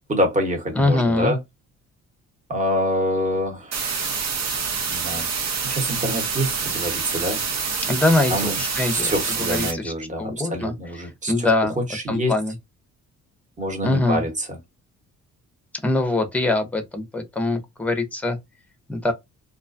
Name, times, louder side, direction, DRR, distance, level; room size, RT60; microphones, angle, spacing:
voice 1, 0.1-1.4 2.5-3.9 4.9-7.4 8.3-8.6 8.9-11.5 11.8-12.3 13.6-14.6, equal, 25° right, 1.1 m, -26 dB
voice 2, 0.7-1.3 7.9-9.1 9.4-10.7 11.3-11.8 12.1-12.5 13.8-14.2 15.8-18.4 18.9-19.1, left 2 dB, 5° left, 0.6 m, -23 dB
sound 1, 3.7-9.7, right 5 dB, 60° right, 0.8 m, -26 dB
2.4 x 2.1 x 2.5 m
cardioid pair, 90°, 30 cm